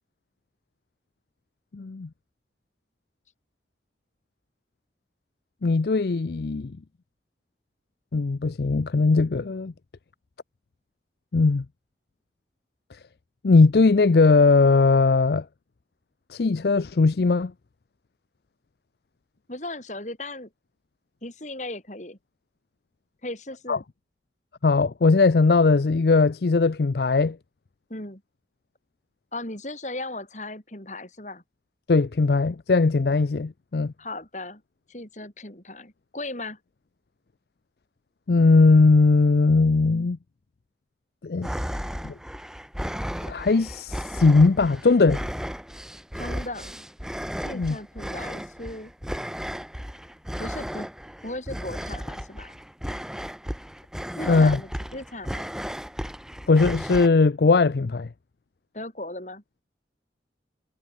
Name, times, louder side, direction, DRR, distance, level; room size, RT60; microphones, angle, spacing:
voice 1, 1.7-2.1 5.6-6.7 8.1-9.7 11.3-11.6 13.4-15.5 16.3-17.5 23.7-23.8 24.6-27.4 31.9-33.9 38.3-40.2 41.2-41.5 42.0-42.1 43.3-45.2 47.5-47.8 54.3-54.6 56.5-58.1, left 3 dB, 65° left, 0.5 m, -19 dB
voice 2, 19.5-20.5 21.2-22.2 23.2-23.8 27.9-28.2 29.3-31.4 34.0-34.6 34.9-36.6 46.2-46.9 47.4-48.9 50.4-50.9 51.2-52.6 54.2-55.5 58.7-59.4, left 2 dB, 40° left, 5.8 m, -37 dB
sound 1, 41.4-57.1, equal, 5° right, 2.1 m, -34 dB
head